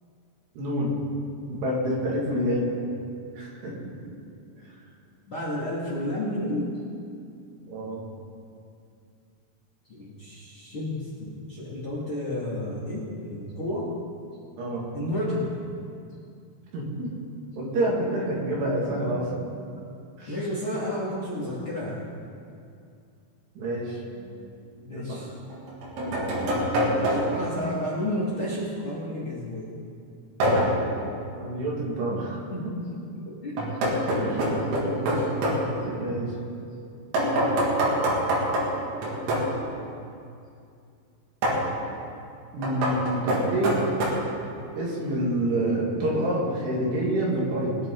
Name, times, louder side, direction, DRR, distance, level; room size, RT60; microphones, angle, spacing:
voice 1, 0.6-0.9 1.4-2.7 3.4-3.7 7.7-8.0 14.6-14.9 16.7-17.1 17.6-19.3 20.2-20.4 23.6-24.0 24.9-25.3 31.3-32.4 34.1-34.4 35.9-36.3 42.5-43.8 44.8-47.8, right 1 dB, 65° right, -4 dB, 4.2 m, -27 dB
voice 2, 5.3-6.8 9.9-13.9 14.9-15.5 18.9-19.2 19.7-19.8 20.3-22.0 24.8-25.3 26.9-29.8 32.5-33.0 33.2-35.3 35.6-36.0, left 1 dB, 40° left, -7 dB, 2.3 m, -32 dB
sound 1, 24.2-24.3 25.5-27.5 30.4-30.9 33.6-35.7 37.1-39.6 41.4-41.7 42.6-44.1, equal, 85° right, 4.6 m, -25 dB
22.0 x 10.5 x 3.9 m, 2.5 s
omnidirectional pair, 5.3 m